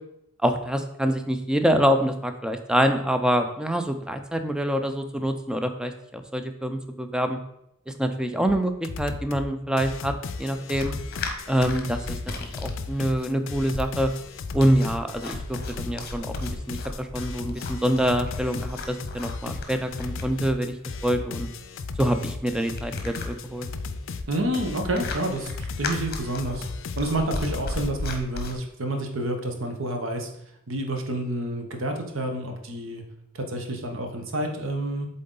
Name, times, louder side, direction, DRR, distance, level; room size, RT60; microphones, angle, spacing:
voice 1, 0.4-7.4 8.0-10.1 10.4-10.9 11.5-12.2 12.6-14.1 14.5-20.7 21.0-21.5 22.0-23.7, equal, 5° right, 7 dB, 0.4 m, -25 dB
sound 1, 8.5-8.6 8.8-9.5 9.8-27.9, left 4 dB, 65° left, 0.5 m, -35 dB
sound 2, 10.7-28.5, left 2 dB, 50° left, 0.9 m, -37 dB
voice 2, 24.3-26.7 27.0-30.3 30.7-33.0 33.3-35.1, right 1 dB, 70° right, 4 dB, 1.0 m, -29 dB
7.7 x 3.8 x 3.8 m, 0.78 s
head